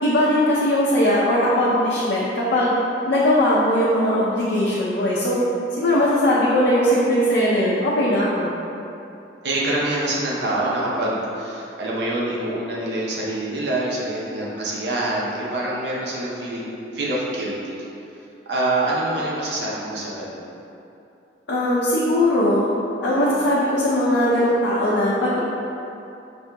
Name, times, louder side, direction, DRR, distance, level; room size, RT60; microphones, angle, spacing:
voice 1, 0.0-2.7 3.1-5.5 5.8-8.5 21.5-22.7 23.0-25.4, left 1 dB, 75° left, -7 dB, 0.5 m, -19 dB
voice 2, 9.4-17.7 18.5-20.4, right 1 dB, 70° right, -5 dB, 0.6 m, -25 dB
5.9 x 2.8 x 2.2 m, 2.8 s
head